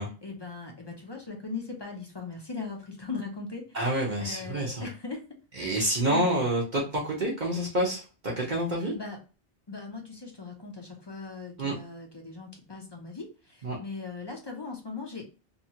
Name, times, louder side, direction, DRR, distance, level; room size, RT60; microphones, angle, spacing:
voice 1, 0.0-5.3 5.6-6.3 8.9-9.2 9.7-15.2, left 4 dB, 30° left, 1 dB, 0.5 m, -39 dB
voice 2, 3.7-4.9 5.6-8.9 11.6-11.7 13.6-13.8, right 1 dB, 50° right, -4 dB, 0.9 m, -28 dB
2.9 x 2.3 x 2.7 m, 0.34 s
omnidirectional pair, 1.1 m